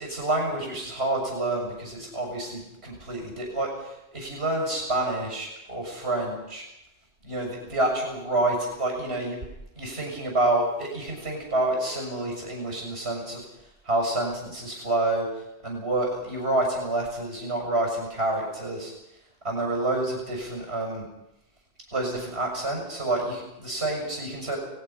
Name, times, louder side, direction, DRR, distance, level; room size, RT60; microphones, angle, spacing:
voice 1, 0.0-6.6 7.2-9.4 9.7-13.4 13.8-15.3 15.6-18.9 19.4-21.1 21.9-24.6, right 2 dB, 90° right, 1 dB, 6.7 m, -28 dB
30.0 x 19.5 x 5.7 m, 0.87 s
omnidirectional pair, 1.1 m